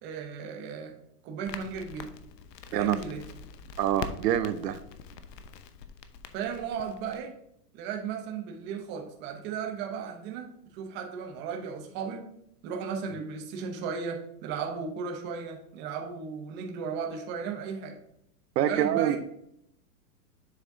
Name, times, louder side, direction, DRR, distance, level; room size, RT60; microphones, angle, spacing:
voice 1, 0.0-0.9 1.2-2.1 2.7-3.2 6.3-7.3 7.7-12.3 12.6-18.0 18.6-19.2, right 6 dB, 25° right, 3 dB, 0.8 m, -35 dB
Crackle, 1.5-7.2, left 6 dB, 85° left, 0.9 m, -44 dB
voice 2, 3.8-4.8 13.1-13.2 18.6-19.2, right 10 dB, 80° right, 12 dB, 0.7 m, -26 dB
7.6 x 6.1 x 2.7 m, 0.74 s
supercardioid pair, 150°, 48 cm